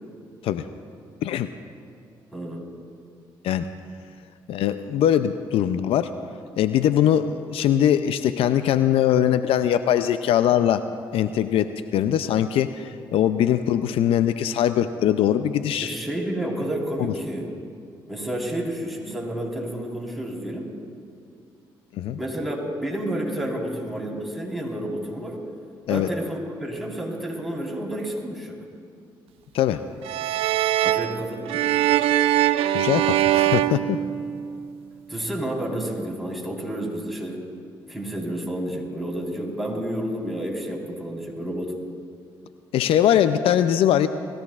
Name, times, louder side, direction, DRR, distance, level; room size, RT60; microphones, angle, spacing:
voice 1, 2.3-2.7 15.8-17.5 18.1-20.7 22.2-25.4 25.9-28.5 30.8-31.6 35.1-37.4 37.9-41.7, right 1 dB, ahead, -3 dB, 4.1 m, -30 dB
voice 2, 4.5-6.1 6.6-10.9 11.1-15.9 17.0-17.1 21.9-22.2 25.9-26.1 29.5-29.8 32.7-34.0 42.7-44.1, left 10 dB, 75° left, 11 dB, 0.4 m, -21 dB
sound 1, 30.0-34.7, right 13 dB, 80° right, 0.4 m, -22 dB
21.0 x 15.0 x 2.4 m, 2.4 s
supercardioid pair, 55°, 10 cm